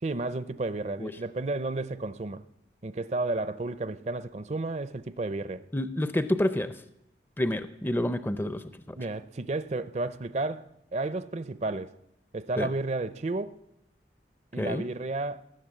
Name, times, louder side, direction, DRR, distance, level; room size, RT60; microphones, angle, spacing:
voice 1, 0.0-2.4 2.8-5.6 9.0-11.9 12.3-13.6 14.5-15.5, right 2 dB, 35° right, 0.5 m, -32 dB
voice 2, 5.7-6.7 7.4-9.0 12.6-12.7 14.6-14.8, left 1 dB, 10° left, 0.5 m, -28 dB
19.5 x 7.7 x 7.7 m
head